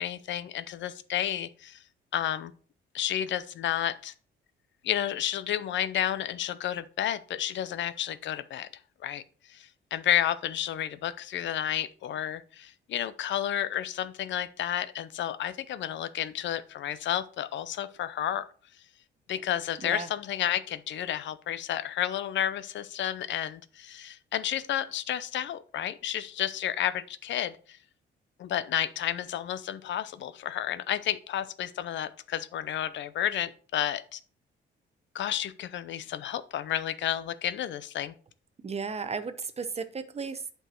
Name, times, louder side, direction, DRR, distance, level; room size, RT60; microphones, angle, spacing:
voice 1, 0.0-1.8 2.1-2.5 2.9-4.1 4.8-8.7 9.0-9.2 9.5-18.5 19.3-27.6 28.4-34.2 35.1-38.1, left 11 dB, 70° left, 14 dB, 0.6 m, -31 dB
voice 2, 38.6-40.5, right 5 dB, 30° right, 11 dB, 0.8 m, -34 dB
7.9 x 4.6 x 4.4 m, 0.42 s
cardioid pair, 90°, 20 cm